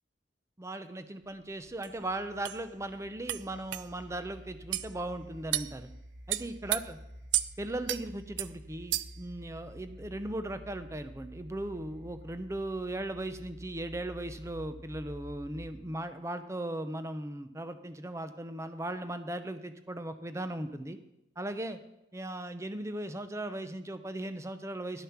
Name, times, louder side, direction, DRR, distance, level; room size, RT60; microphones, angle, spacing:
voice 1, 0.6-5.9 6.3-7.0 7.6-21.0 21.4-21.8 22.1-25.0, right 1 dB, 15° right, 10 dB, 0.6 m, -38 dB
sound 1, 1.2-16.1, equal, 65° right, 1.8 m, -50 dB
sound 2, 1.8-1.9 2.4-2.6 3.3-3.4 3.7-3.9 4.7-4.9 5.5-5.7 6.3-6.8 7.3-7.5 7.9-8.0 8.4-8.5 8.9-9.2, right 15 dB, 85° right, 0.4 m, -31 dB
11.0 x 6.8 x 5.9 m, 0.88 s
head